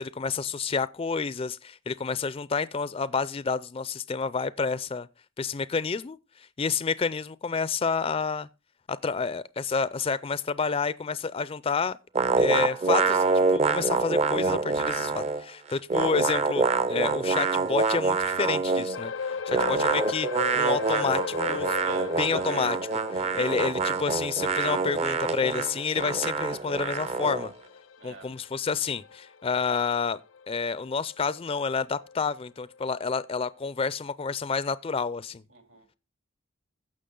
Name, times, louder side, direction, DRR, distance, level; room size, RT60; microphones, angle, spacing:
voice 1, 0.0-5.1 5.4-6.2 6.6-8.5 8.9-12.0 12.4-13.2 13.5-19.1 19.5-20.3 20.5-21.8 22.2-22.8 23.1-27.5 28.0-30.2 30.5-35.4, left 5 dB, 30° left, 0.4 m, -29 dB
sound 1, 12.2-15.4 15.7-19.0 19.5-27.5, right 4 dB, 30° right, 0.6 m, -26 dB
sound 2, 18.9-31.6 32.0-32.2 32.7-32.8, left 5 dB, 70° left, 0.6 m, -38 dB
voice 2, 21.8-22.7 23.2-23.5 28.0-28.3 35.5-36.0, right 5 dB, 70° right, 2.6 m, -42 dB
15.0 x 5.9 x 3.8 m
head